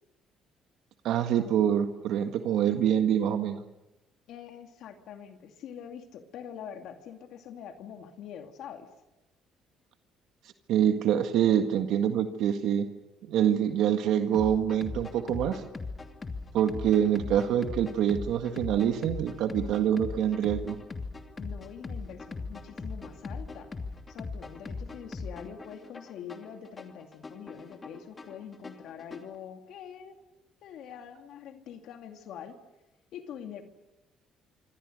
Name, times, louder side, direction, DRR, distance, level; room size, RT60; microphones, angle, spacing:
voice 1, 1.0-3.6 10.7-12.9 13.3-15.6 16.5-20.8, right 9 dB, 75° right, 6 dB, 1.7 m, -25 dB
voice 2, 4.3-8.9 21.4-23.7 24.1-30.2 30.6-32.6 33.1-33.6, left 8 dB, 70° left, 5 dB, 2.4 m, -44 dB
sound 1, 14.3-29.4, left 3 dB, 30° left, 2.8 m, -40 dB
26.0 x 25.5 x 6.6 m, 0.98 s
cardioid pair, 90°, 0 cm